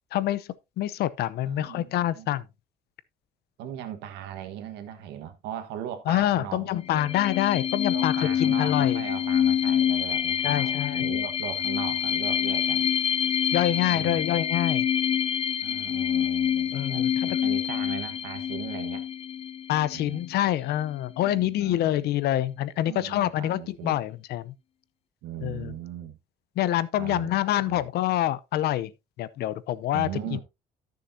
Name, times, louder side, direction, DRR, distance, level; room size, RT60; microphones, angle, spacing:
voice 1, 0.1-0.5 0.8-2.4 6.1-9.0 10.4-11.1 13.5-14.8 16.7-17.4 19.7-24.5 25.4-25.7 26.6-28.9 29.2-30.1, left 13 dB, 70° left, 0.7 m, -26 dB
voice 2, 1.4-2.3 3.6-7.1 7.9-12.9 13.7-14.3 15.6-19.1 19.9-20.2 21.2-21.9 22.8-24.0 25.2-26.2 26.9-27.8 29.9-30.4, right 10 dB, 90° right, 1.4 m, -39 dB
sound 1, 6.9-20.3, left 9 dB, 35° left, 0.4 m, -26 dB
14.0 x 6.6 x 2.7 m
cardioid pair, 110°, 17 cm